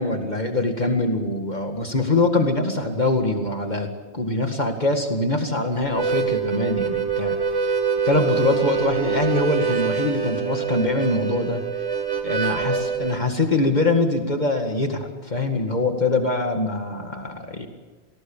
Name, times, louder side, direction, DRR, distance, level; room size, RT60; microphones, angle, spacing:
voice 1, 0.0-7.4 7.7-7.8 8.0-11.6 12.2-17.7, left 2 dB, 40° left, 4 dB, 2.2 m, -23 dB
Harmonica, 5.8-13.2, right 6 dB, 70° right, 2.3 m, -25 dB
27.5 x 19.0 x 7.2 m, 1.3 s
omnidirectional pair, 1.1 m